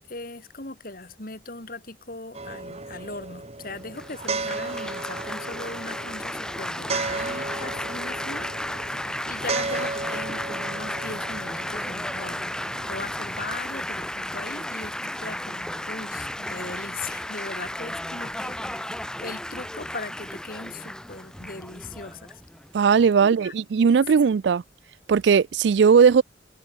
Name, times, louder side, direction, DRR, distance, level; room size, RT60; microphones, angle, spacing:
voice 1, 0.1-12.5 12.9-22.4 23.2-23.5 24.2-24.3, left 3 dB, 50° left, 3.2 m, -39 dB
sound 1, 2.3-13.6, right 3 dB, 35° right, 2.2 m, -34 dB
Laughter / Applause / Chatter, 4.0-23.1, left 1 dB, 5° left, 0.8 m, -34 dB
voice 2, 22.7-24.6 25.1-26.2, right 6 dB, 70° right, 0.4 m, -18 dB
head